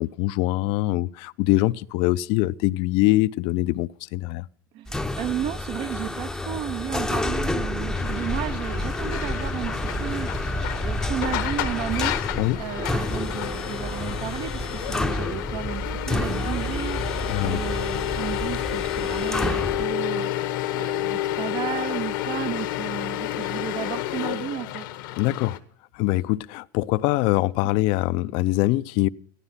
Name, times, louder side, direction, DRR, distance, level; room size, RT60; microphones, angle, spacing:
voice 1, 0.0-4.4 12.3-12.6 17.3-17.6 25.2-25.6 25.9-29.1, left 18 dB, 55° left, 0.5 m, -23 dB
voice 2, 4.7-24.9 27.6-27.7, right 11 dB, 45° right, 0.6 m, -33 dB
sound 1, 4.9-19.9, left 1 dB, 5° left, 0.7 m, -29 dB
sound 2, 7.9-25.6, left 14 dB, 75° left, 1.0 m, -30 dB
14.5 x 11.5 x 5.7 m
supercardioid pair, 120°, 11 cm